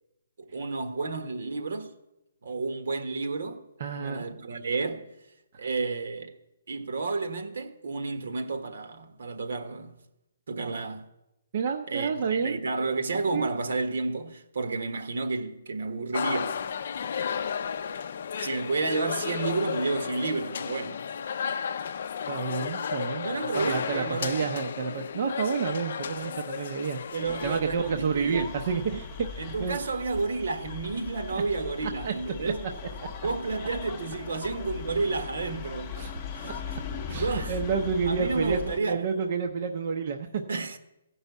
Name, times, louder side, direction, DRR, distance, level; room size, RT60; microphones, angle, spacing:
voice 1, 0.5-1.9 2.4-3.6 4.0-5.1 5.6-6.3 6.7-9.9 10.5-11.1 11.9-16.6 18.4-21.0 23.2-24.4 27.1-28.6 29.4-32.6 33.2-35.9 36.3-36.8 37.1-37.6 38.1-39.0 40.5-40.8, right 3 dB, 70° right, 1.4 m, -31 dB
voice 2, 3.8-4.2 11.5-12.6 13.3-13.5 22.3-23.3 23.5-27.0 27.3-29.8 31.8-32.7 35.9-36.1 36.4-36.5 37.1-40.4, right 5 dB, 40° right, 0.7 m, -30 dB
sound 1, 16.1-27.6, left 7 dB, 50° left, 0.5 m, -33 dB
sound 2, 27.2-38.8, left 6 dB, 20° left, 0.8 m, -39 dB
15.5 x 5.5 x 8.1 m
hypercardioid pair, 175°, 0 cm